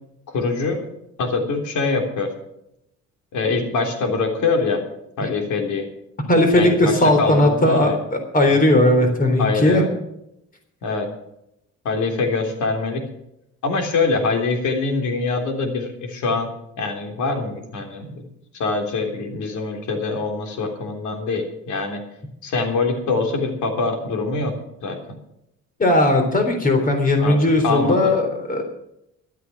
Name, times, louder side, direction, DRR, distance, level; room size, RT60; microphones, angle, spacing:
voice 1, 0.3-0.8 1.2-2.3 3.3-4.8 5.2-5.9 6.5-8.0 8.5-8.6 9.4-9.9 10.8-11.1 11.9-13.0 13.6-16.5 16.8-18.2 18.5-22.0 22.4-24.5 24.8-25.0 27.2-27.4 27.6-28.1, left 3 dB, 80° left, 3 dB, 3.5 m, -24 dB
voice 2, 6.3-9.8 25.8-28.6, left 1 dB, 30° left, 4 dB, 3.7 m, -17 dB
13.0 x 12.5 x 6.1 m, 0.80 s
cardioid pair, 135°, 29 cm